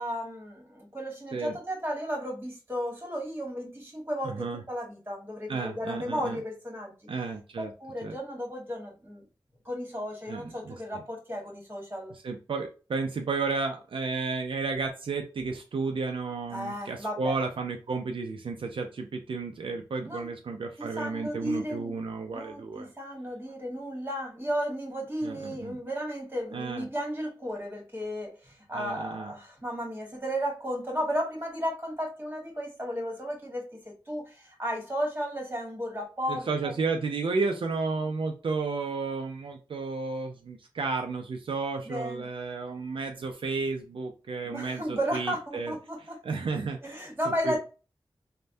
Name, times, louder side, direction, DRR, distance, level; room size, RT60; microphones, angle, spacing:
voice 1, 0.0-6.9 7.6-9.2 9.6-12.1 16.5-17.3 20.0-20.3 20.8-22.0 22.3-36.7 41.8-42.2 44.4-46.2 46.8-47.6, equal, 25° right, 0 dB, 1.5 m, -34 dB
voice 2, 4.2-4.6 5.5-6.4 7.1-7.7 8.0-8.2 10.3-11.0 12.1-22.9 25.2-25.8 26.5-26.9 28.7-29.3 36.3-45.8 46.2-47.0 47.4-47.6, right 4 dB, 80° right, 4 dB, 0.4 m, -32 dB
3.3 x 2.1 x 2.6 m, 0.33 s
cardioid pair, 50°, 9 cm